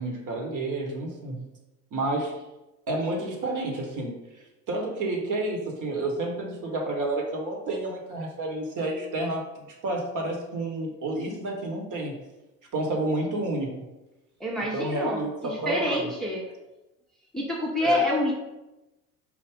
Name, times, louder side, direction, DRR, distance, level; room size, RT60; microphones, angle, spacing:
voice 1, 0.0-1.4 1.9-2.3 2.9-4.2 4.7-12.2 12.7-13.8 14.6-16.1 17.8-18.0, right 2 dB, 40° right, 1 dB, 1.2 m, -30 dB
voice 2, 14.4-16.4 17.3-18.3, left 1 dB, ahead, -3 dB, 0.7 m, -27 dB
4.8 x 2.4 x 3.6 m, 0.99 s
hypercardioid pair, 70°, 47 cm